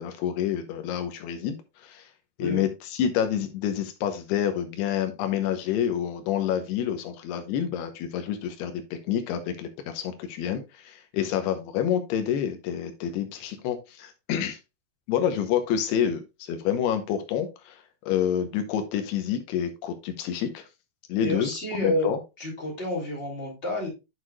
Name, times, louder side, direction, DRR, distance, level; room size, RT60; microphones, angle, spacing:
voice 1, 0.0-2.1 2.4-14.6 15.1-20.7 21.1-22.2, left 9 dB, 85° left, 7 dB, 2.9 m, -28 dB
voice 2, 21.2-22.1 22.4-23.9, left 1 dB, 15° left, -3 dB, 3.3 m, -29 dB
9.4 x 6.4 x 2.3 m, 0.25 s
omnidirectional pair, 4.6 m